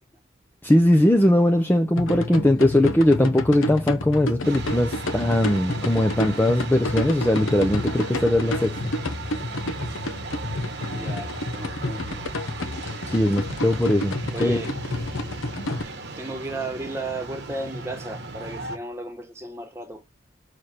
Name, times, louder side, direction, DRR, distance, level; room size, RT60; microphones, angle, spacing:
voice 1, 0.6-8.8 13.1-14.6, left 1 dB, 10° left, 0.5 m, -20 dB
sound 1, 2.0-15.8, left 1 dB, 90° left, 0.8 m, -30 dB
sound 2, 4.4-18.8, right 3 dB, 55° right, 1.1 m, -37 dB
voice 2, 10.9-12.2 14.3-14.7 16.2-20.0, right 2 dB, 15° right, 1.0 m, -34 dB
6.4 x 3.2 x 5.6 m
head